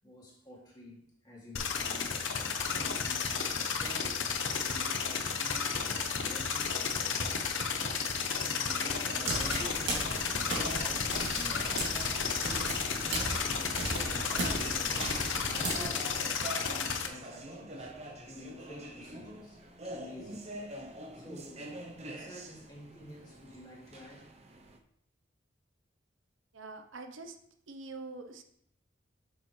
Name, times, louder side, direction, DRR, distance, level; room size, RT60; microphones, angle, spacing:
voice 1, 0.0-13.8 14.3-16.3 16.6-17.9 18.2-20.5 21.1-21.8 22.0-24.3, left 1 dB, 20° left, -4 dB, 2.4 m, -49 dB
sound 1, 1.6-17.1, left 6 dB, 75° left, 0.9 m, -33 dB
sound 2, 9.0-24.8, right 1 dB, 35° right, 0.7 m, -46 dB
sound 3, 9.2-15.8, right 2 dB, 65° right, 2.4 m, -37 dB
voice 2, 26.5-27.4 27.7-28.4, right 3 dB, 80° right, 6 dB, 0.8 m, -44 dB
7.7 x 7.1 x 3.2 m, 0.68 s
head